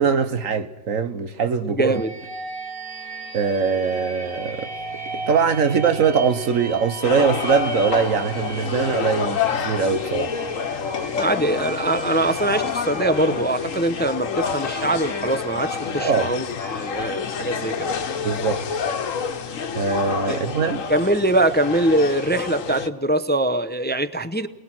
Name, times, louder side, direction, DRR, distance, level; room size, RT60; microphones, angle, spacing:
voice 1, 0.0-2.0 3.3-4.7 5.3-10.3 16.0-16.3 18.2-18.6 19.7-20.9, right 6 dB, 85° right, 1.6 m, -22 dB
voice 2, 1.8-2.1 11.2-17.9 20.3-20.4 20.9-24.5, right 1 dB, 10° left, 0.6 m, -22 dB
sound 1, 1.9-17.5, right 3 dB, 25° right, 4.0 m, -36 dB
sound 2, 7.0-22.9, left 6 dB, 80° left, 1.5 m, -28 dB
28.5 x 20.5 x 6.1 m
omnidirectional pair, 1.3 m